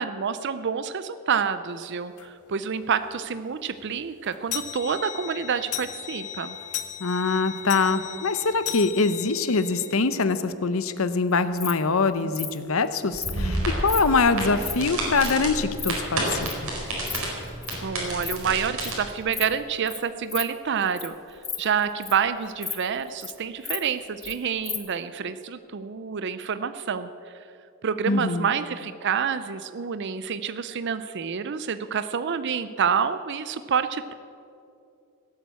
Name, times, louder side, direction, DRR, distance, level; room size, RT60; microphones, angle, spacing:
voice 1, 0.0-6.6 17.8-27.1 27.8-34.1, right 7 dB, 55° right, 12 dB, 0.5 m, -28 dB
sound 1, 2.2-2.3 2.8-2.9 3.2-3.3 3.7-10.1, left 11 dB, 90° left, 1.0 m, -36 dB
voice 2, 7.0-16.7 28.1-28.5, left 4 dB, 65° left, 12 dB, 0.8 m, -24 dB
Insect, 11.3-11.7 12.3-12.5 13.2-13.4 13.8-14.0 14.4-14.7 15.2-15.3 15.6-15.9 16.4-16.6 16.9-17.2 17.4-17.7 18.1-18.3 18.6-18.9 19.3-19.5 19.9-20.0 20.3-20.4 20.8-21.1 21.4-22.3 22.6-22.7 23.0-23.3 23.6-24.3 24.6-24.8, left 6 dB, 15° left, 1.1 m, -33 dB
sound 2, 13.1-18.9, right 1 dB, 75° right, 4.6 m, -30 dB
17.5 x 8.5 x 8.2 m, 2.6 s
head